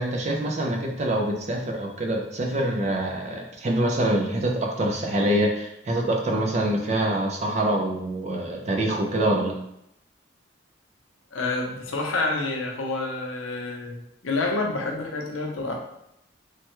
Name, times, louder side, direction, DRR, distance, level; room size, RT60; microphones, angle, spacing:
voice 1, 0.0-9.6, right 1 dB, 35° right, 1 dB, 0.4 m, -25 dB
voice 2, 11.3-15.8, left 3 dB, 90° left, 0 dB, 0.6 m, -28 dB
3.2 x 2.1 x 3.0 m, 0.79 s
head